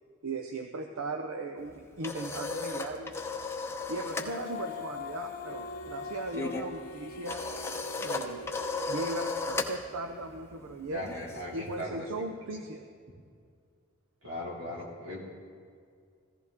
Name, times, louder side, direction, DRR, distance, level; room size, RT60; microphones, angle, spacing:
voice 1, 0.2-3.2 3.9-7.4 8.0-8.5 8.9-11.1 11.5-12.8, right 2 dB, 85° right, 5 dB, 0.7 m, -38 dB
sound 1, 1.7-4.4 4.6-4.9 5.2-11.9, left 3 dB, 10° left, 0.7 m, -36 dB
Female singing, 4.0-9.2, left 8 dB, 40° left, 0.5 m, -44 dB
sound 2, 5.4-9.3, right 3 dB, 85° left, 0.6 m, -47 dB
voice 2, 10.9-12.1 12.5-12.6 14.2-15.2, left 1 dB, 65° right, -3 dB, 2.9 m, -38 dB
15.5 x 14.5 x 3.7 m, 2.2 s
head